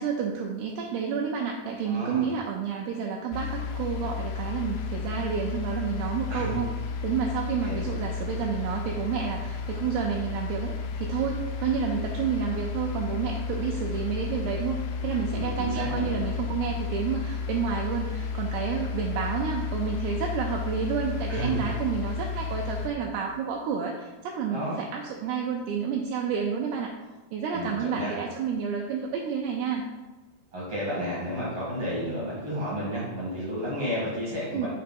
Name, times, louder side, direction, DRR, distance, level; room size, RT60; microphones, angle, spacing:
voice 1, 0.0-6.7 7.0-27.0 27.3-29.9 34.5-34.7, right 6 dB, 80° right, 0 dB, 2.4 m, -30 dB
voice 2, 1.8-2.3 6.3-6.6 7.6-7.8 15.3-16.1 21.3-21.7 24.5-24.8 27.5-28.1 30.5-34.7, equal, 60° right, -8 dB, 1.5 m, -32 dB
sound 1, 3.3-22.9, left 5 dB, 85° left, 2.3 m, -32 dB
6.6 x 2.9 x 5.3 m, 1.2 s
omnidirectional pair, 5.0 m